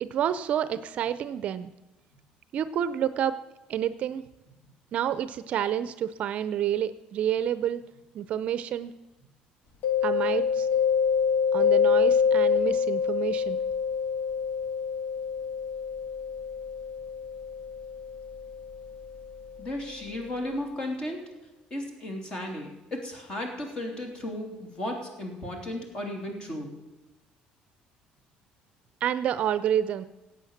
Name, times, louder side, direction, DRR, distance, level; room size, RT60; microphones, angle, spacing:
voice 1, 0.0-1.7 2.5-3.3 3.7-4.2 4.9-7.8 8.1-8.9 10.0-10.7 11.5-13.6 29.0-30.0, right 10 dB, 45° right, 13 dB, 0.6 m, -29 dB
Mallet percussion, 9.8-19.4, left 6 dB, 65° left, 1.8 m, -26 dB
voice 2, 19.6-21.2 21.7-26.7, left 1 dB, 30° left, 3 dB, 3.1 m, -35 dB
17.0 x 8.4 x 7.2 m, 1.0 s
cardioid pair, 160°, 3 cm